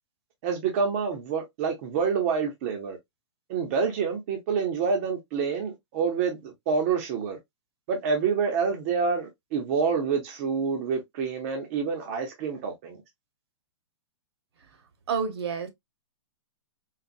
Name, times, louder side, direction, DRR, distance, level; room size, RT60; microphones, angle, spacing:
voice 1, 0.4-3.0 3.5-7.4 7.9-13.0, right 5 dB, 25° right, 0.5 m, -27 dB
voice 2, 15.1-15.7, right 6 dB, 55° right, 0.8 m, -28 dB
3.9 x 2.0 x 2.4 m
hypercardioid pair, 170°, 16 cm